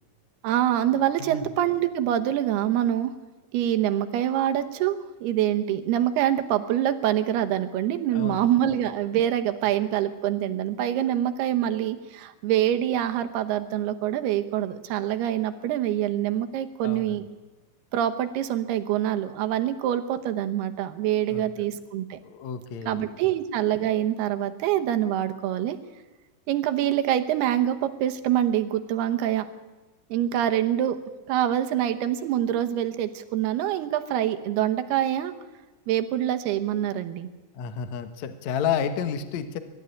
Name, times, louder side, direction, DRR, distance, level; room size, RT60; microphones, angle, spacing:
voice 1, 0.4-3.1 3.5-17.3 17.9-22.2 22.9-25.8 26.5-29.5 30.1-31.0 31.3-35.3 35.9-37.3, right 11 dB, 80° right, 8 dB, 3.1 m, -25 dB
voice 2, 8.1-8.5 16.8-17.3 21.3-21.7 22.2-23.3 37.5-39.6, left 7 dB, 65° left, 9 dB, 2.0 m, -31 dB
24.0 x 12.5 x 9.9 m, 1.2 s
omnidirectional pair, 4.6 m